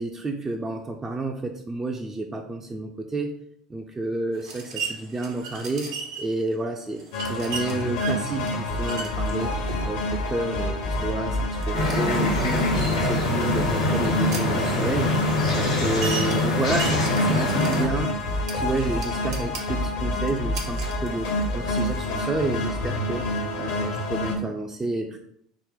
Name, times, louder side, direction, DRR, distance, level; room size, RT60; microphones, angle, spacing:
voice 1, 0.0-3.3 3.7-7.0 7.3-9.5 9.9-10.0 10.3-15.1 15.5-25.2, right 2 dB, 15° right, 2 dB, 0.4 m, -30 dB
sound 1, 4.3-22.2, right 5 dB, 70° right, 0.7 m, -39 dB
sound 2, 7.1-24.4, left 1 dB, 65° left, 0.7 m, -28 dB
sound 3, 11.7-17.9, left 1 dB, 85° left, 0.9 m, -24 dB
3.7 x 2.0 x 3.9 m, 0.69 s
figure-of-eight pair, 70°, 3 cm